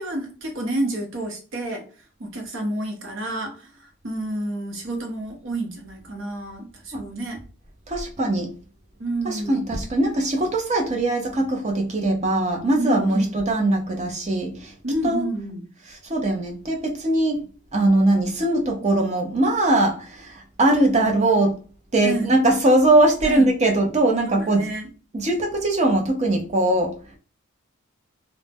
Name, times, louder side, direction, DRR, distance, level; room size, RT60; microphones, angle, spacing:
voice 1, 0.0-1.8 2.2-7.4 9.0-9.7 12.8-13.3 14.8-15.6 22.0-22.3 23.2-23.5 24.3-24.9, right 1 dB, 65° right, 2 dB, 0.8 m, -29 dB
voice 2, 7.9-8.5 9.2-14.7 15.0-15.2 16.1-17.4 17.7-21.5 21.9-24.6 25.1-26.9, right 1 dB, 35° right, 2 dB, 0.6 m, -21 dB
2.5 x 2.1 x 3.4 m, 0.38 s
head